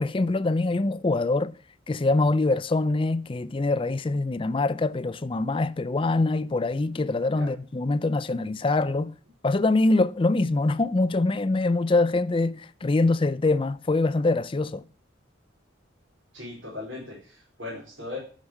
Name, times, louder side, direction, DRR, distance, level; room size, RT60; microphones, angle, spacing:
voice 1, 0.0-1.5 1.9-9.1 9.4-14.8, left 2 dB, 25° left, 0.4 m, -24 dB
voice 2, 16.3-18.2, left 2 dB, 65° right, 4.6 m, -38 dB
11.5 x 5.2 x 6.4 m
head